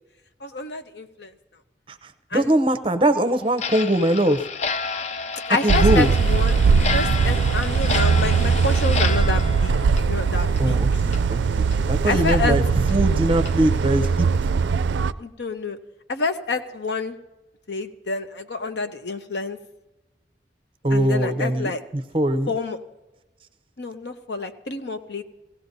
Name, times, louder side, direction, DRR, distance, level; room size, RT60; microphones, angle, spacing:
voice 1, 0.4-1.3 2.3-2.5 5.5-11.1 12.1-12.6 15.2-15.8 16.1-17.1 17.7-19.6 20.9-21.8 22.5-22.8 23.8-25.2, left 3 dB, 75° left, 8 dB, 0.9 m, -28 dB
voice 2, 1.9-4.4 5.6-6.1 10.6-12.6 12.9-14.3 20.8-21.8 22.1-22.5, right 1 dB, 30° right, 11 dB, 0.6 m, -21 dB
Clock, 3.5-10.8 11.1-11.2 11.7-11.8 12.3-12.4 12.9-13.0 13.5-13.6 14.0-14.2, left 5 dB, 40° left, 0.4 m, -30 dB
sound 1, 5.7-15.1, right 5 dB, 90° right, 0.4 m, -20 dB
18.0 x 16.0 x 2.7 m, 1.0 s
head